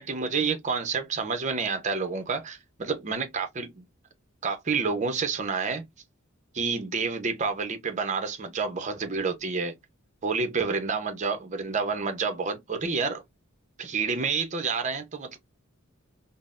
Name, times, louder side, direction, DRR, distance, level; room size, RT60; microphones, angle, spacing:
voice 1, 0.0-3.8 4.4-5.8 6.5-9.8 10.2-13.2 13.8-15.4, right 4 dB, 35° right, 0.6 m, -29 dB
3.7 x 2.0 x 2.4 m
head